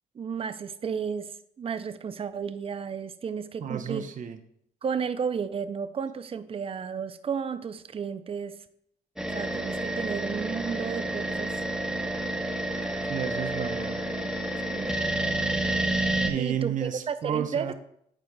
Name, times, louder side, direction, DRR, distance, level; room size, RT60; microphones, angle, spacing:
voice 1, 0.1-1.3 1.6-4.1 4.8-8.6 9.3-11.5 14.1-14.3 14.7-14.9 16.4-17.7, right 6 dB, 40° right, 12 dB, 0.5 m, -33 dB
voice 2, 3.6-4.4 13.1-14.0 16.2-17.7, right 9 dB, 55° right, 6 dB, 0.8 m, -31 dB
sound 1, 9.2-16.3, right 1 dB, 5° right, 1.1 m, -29 dB
11.5 x 4.6 x 2.3 m, 0.72 s
cardioid pair, 80°, 15 cm